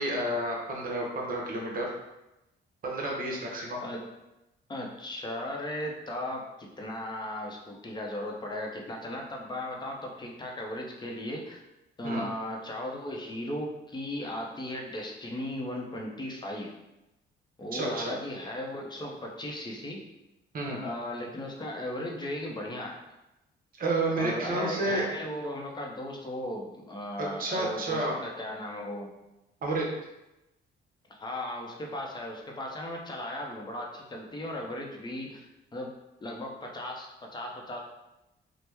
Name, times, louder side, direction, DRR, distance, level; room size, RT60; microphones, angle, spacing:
voice 1, 0.0-1.9 2.8-3.8 12.0-12.2 17.7-18.1 20.5-20.8 23.8-25.1 27.2-28.2 29.6-29.9, right 2 dB, 45° right, -2 dB, 0.8 m, -30 dB
voice 2, 4.7-11.6 12.0-16.7 17.6-20.0 20.8-23.0 24.2-29.1 31.1-35.9 36.2-37.8, left 1 dB, 20° left, 0 dB, 0.6 m, -37 dB
2.9 x 2.0 x 3.4 m, 0.94 s
cardioid pair, 90°, 20 cm